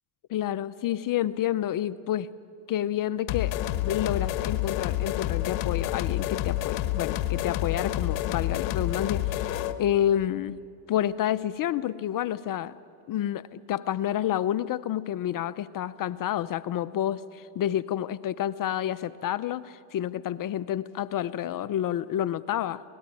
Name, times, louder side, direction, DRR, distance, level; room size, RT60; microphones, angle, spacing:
voice 1, 0.3-2.3 2.7-3.5 3.8-10.6 10.9-12.7 13.1-22.8, left 11 dB, 45° left, 17 dB, 0.6 m, -29 dB
sound 1, 3.3-9.8, left 14 dB, 65° left, 1.4 m, -29 dB
26.0 x 18.5 x 9.6 m, 2.6 s
supercardioid pair, 85°, 48 cm